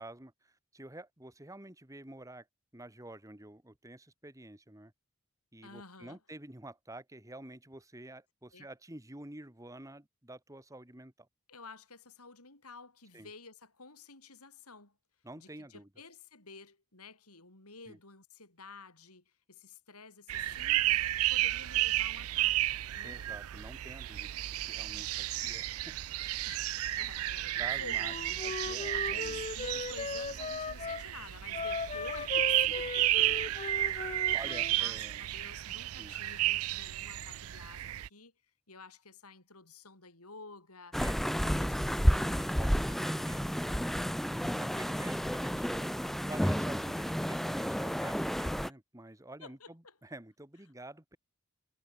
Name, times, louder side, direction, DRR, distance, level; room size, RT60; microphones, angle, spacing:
voice 1, 0.0-2.4 2.7-4.9 5.5-11.3 13.1-13.3 15.2-15.9 17.9-18.0 23.0-24.4 24.7-25.9 27.6-28.1 28.4-29.4 33.1-33.6 34.3-35.2 36.0-36.1 41.0-41.2 42.6-43.8 44.6-51.2, right 1 dB, 15° right, 1.7 m, -49 dB
voice 2, 5.6-6.2 8.5-8.7 11.5-15.0 15.4-21.0 21.3-23.2 26.4-28.4 28.9-33.5 33.8-38.3 38.7-41.0 41.4-43.0 49.4-50.0, left 4 dB, 90° left, 7.7 m, -52 dB
sound 1, 20.3-38.1, right 15 dB, 75° right, 0.4 m, -32 dB
Wind instrument woodwind instrument, 28.0-31.0 31.5-34.8, left 4 dB, 30° left, 0.5 m, -38 dB
sound 2, 40.9-48.7, equal, ahead, 1.1 m, -31 dB
head